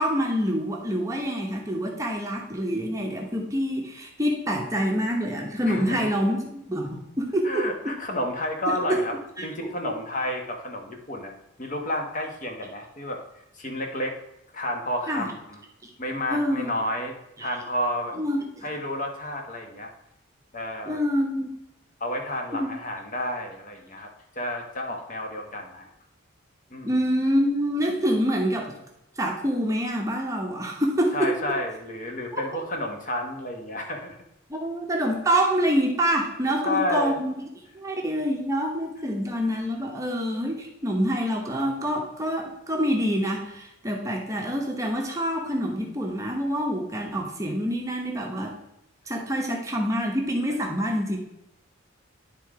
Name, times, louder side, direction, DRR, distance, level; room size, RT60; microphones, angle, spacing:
voice 1, 0.0-7.9 8.7-9.0 9.4-9.9 15.1-15.3 15.8-15.9 16.3-16.7 17.4-17.5 18.2-18.6 20.8-21.5 22.5-22.7 26.8-28.7 29.2-31.3 32.3-32.4 34.5-37.3 37.7-48.6 49.1-51.2, equal, 15° right, 1 dB, 0.8 m, -26 dB
voice 2, 5.6-6.1 7.4-9.1 9.4-11.3 11.6-13.2 13.5-14.2 14.5-15.6 16.0-17.1 17.4-18.1 18.6-19.9 20.5-21.0 22.0-24.1 24.3-25.9 26.7-26.9 31.1-34.2 36.6-37.2, left 1 dB, 40° left, 3 dB, 1.1 m, -30 dB
10.0 x 3.7 x 4.7 m, 0.86 s
head